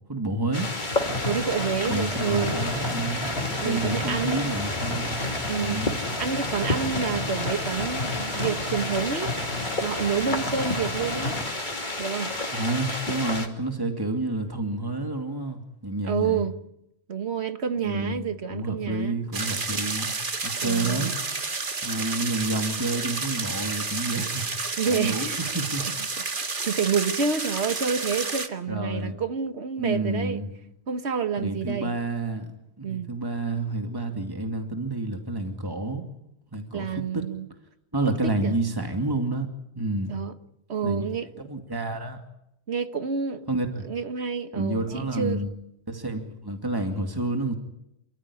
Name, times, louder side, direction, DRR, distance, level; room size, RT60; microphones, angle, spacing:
voice 1, 0.1-0.7 1.9-3.3 3.6-5.9 7.1-7.3 12.5-16.5 17.8-20.1 20.4-21.1 21.8-25.9 28.7-29.2 29.8-30.5 31.4-32.5 32.8-36.0 36.5-37.2 37.9-39.5 39.7-40.2 40.8-41.1 41.4-42.2 43.5-43.9 44.5-45.5 45.9-47.5, right 2 dB, 20° right, 2.5 m, -29 dB
sound 1, 0.5-13.5, left 2 dB, 45° left, 2.9 m, -31 dB
sound 2, 0.9-11.4, left 2 dB, 65° left, 4.2 m, -33 dB
voice 2, 1.3-2.6 3.6-4.5 5.5-5.8 6.2-9.3 9.8-11.4 12.0-12.3 16.0-16.5 17.1-19.2 20.6-21.1 24.8-25.4 26.6-30.4 30.9-32.0 32.8-33.1 36.7-37.5 38.1-38.6 40.1-40.3 40.7-41.3 42.7-43.5 43.8-45.4, right 6 dB, 80° right, 1.7 m, -28 dB
sound 3, 19.3-28.5, right 3 dB, 50° right, 1.8 m, -30 dB
28.0 x 14.5 x 9.9 m
omnidirectional pair, 1.1 m